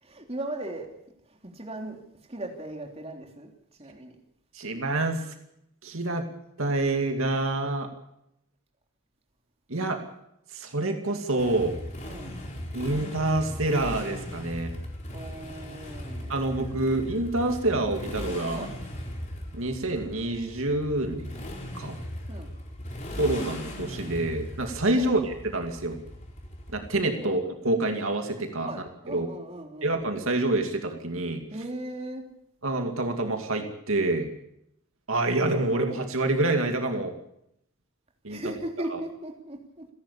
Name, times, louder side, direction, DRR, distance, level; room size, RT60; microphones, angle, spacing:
voice 1, 0.0-0.9 1.3-2.0 2.3-3.5 3.8-4.2 12.1-12.4 15.1-16.5 18.5-18.7 22.3-22.5 25.0-25.2 27.2-27.4 28.6-29.9 31.5-32.3 38.3-39.9, right 1 dB, 30° right, 2 dB, 3.2 m, -38 dB
voice 2, 4.5-5.3 5.8-6.2 6.6-7.9 9.7-10.0 10.5-11.7 12.7-14.7 16.3-18.7 19.5-21.4 21.7-22.0 23.2-26.0 26.7-28.7 29.1-29.3 29.8-31.4 32.6-34.3 35.1-37.1 38.2-38.4, right 2 dB, 75° right, 4 dB, 2.5 m, -27 dB
Motorcycle, 11.4-27.2, left 1 dB, 35° left, 4.6 m, -38 dB
28.5 x 11.5 x 8.5 m, 0.79 s
head